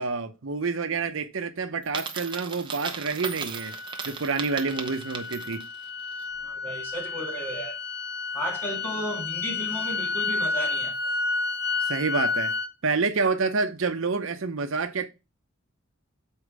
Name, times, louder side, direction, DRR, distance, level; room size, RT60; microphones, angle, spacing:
voice 1, 0.0-3.8 4.0-5.6 11.9-12.5 12.8-15.1, right 4 dB, 70° right, 0.7 m, -28 dB
Coin (dropping), 1.8-5.8, right 5 dB, 20° right, 0.8 m, -36 dB
sound 1, 3.5-12.7, left 4 dB, 50° left, 1.0 m, -31 dB
voice 2, 6.4-7.8 8.3-10.9, equal, 10° left, 1.7 m, -34 dB
7.0 x 4.4 x 4.8 m
head